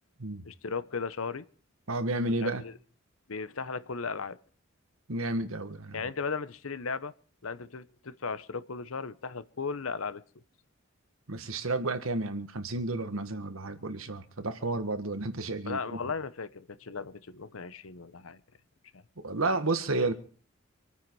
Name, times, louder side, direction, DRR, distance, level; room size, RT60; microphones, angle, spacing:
voice 1, 0.4-1.4 2.4-2.7 3.3-4.4 5.9-7.1 7.4-10.2 15.7-18.4 18.9-19.0, left 5 dB, 90° left, 0.9 m, -36 dB
voice 2, 1.9-2.6 5.1-6.0 11.3-16.0 19.2-20.1, right 2 dB, 85° right, 1.6 m, -31 dB
26.0 x 9.5 x 4.7 m
head